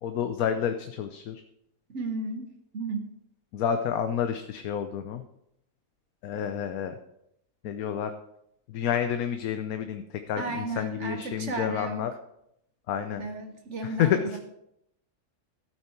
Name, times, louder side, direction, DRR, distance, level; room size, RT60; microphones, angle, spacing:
voice 1, 0.0-1.4 3.5-5.2 6.2-7.0 7.6-8.1 8.7-12.1 12.9-13.2 14.0-14.4, left 8 dB, 80° left, 8 dB, 1.2 m, -29 dB
voice 2, 1.9-3.1 10.4-12.1 13.2-14.4, right 3 dB, 55° right, 6 dB, 1.3 m, -34 dB
13.0 x 8.8 x 4.5 m, 0.79 s
omnidirectional pair, 1.5 m